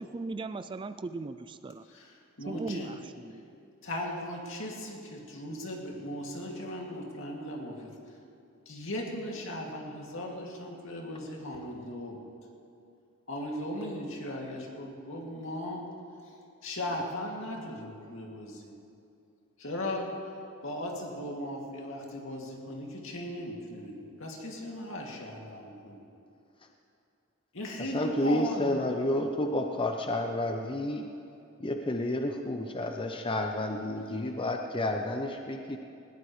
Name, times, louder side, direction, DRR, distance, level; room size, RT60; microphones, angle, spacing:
voice 1, 0.0-1.8 2.5-3.4, right 3 dB, 25° right, 12 dB, 0.3 m, -38 dB
voice 2, 1.9-2.9 3.8-7.9 8.7-12.2 13.3-15.8 16.6-18.7 19.6-20.1 20.6-26.0 27.5-29.0, left 1 dB, 65° left, -1 dB, 2.5 m, -37 dB
voice 3, 27.8-31.1 31.6-35.8, left 1 dB, 25° left, 3 dB, 0.7 m, -30 dB
20.0 x 18.0 x 3.3 m, 2.6 s
head